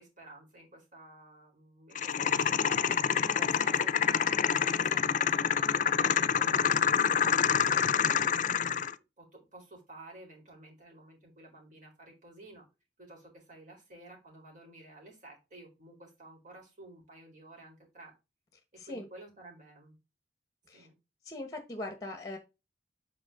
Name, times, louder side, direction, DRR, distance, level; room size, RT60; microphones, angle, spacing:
voice 1, 0.0-9.3 9.5-12.7 13.0-18.1 18.8-20.0 20.7-20.9, right 2 dB, 45° right, 0 dB, 4.3 m, -53 dB
sound 1, 2.0-8.9, left 8 dB, 45° left, 0.5 m, -27 dB
voice 2, 18.8-19.1 20.7-20.9 21.2-22.4, left 2 dB, 20° left, 5 dB, 1.4 m, -40 dB
8.4 x 5.0 x 3.8 m, 0.26 s
head